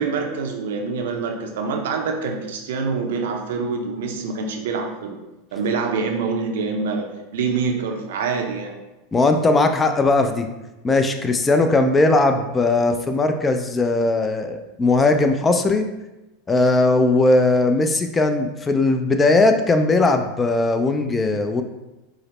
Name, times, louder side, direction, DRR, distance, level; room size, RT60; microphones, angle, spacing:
voice 1, 0.0-5.2 5.5-7.1 7.3-8.8, right 4 dB, 75° right, 3 dB, 0.6 m, -25 dB
voice 2, 9.1-10.5 10.8-15.9 16.5-21.6, left 2 dB, 20° left, 6 dB, 0.4 m, -18 dB
4.8 x 2.0 x 3.1 m, 1.0 s
hypercardioid pair, 100°, 0 cm